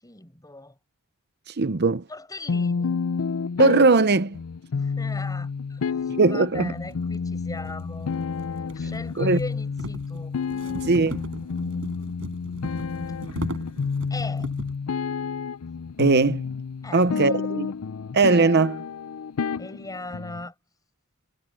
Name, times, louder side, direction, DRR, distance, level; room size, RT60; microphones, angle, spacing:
voice 1, 0.0-0.8 2.1-3.0 4.7-8.1 8.7-12.1 13.0-13.1 14.1-14.5 16.8-17.4 19.6-20.5, left 2 dB, 15° left, 5.6 m, -39 dB
voice 2, 1.5-2.0 3.6-4.4 6.2-6.7 9.2-9.4 10.8-11.2 16.0-16.4 16.9-17.7 18.1-18.8, right 3 dB, 50° right, 0.8 m, -19 dB
sound 1, 2.5-20.5, left 5 dB, 85° left, 0.5 m, -30 dB
sound 2, 6.0-6.1 6.8-14.8, right 1 dB, 70° right, 5.1 m, -39 dB
head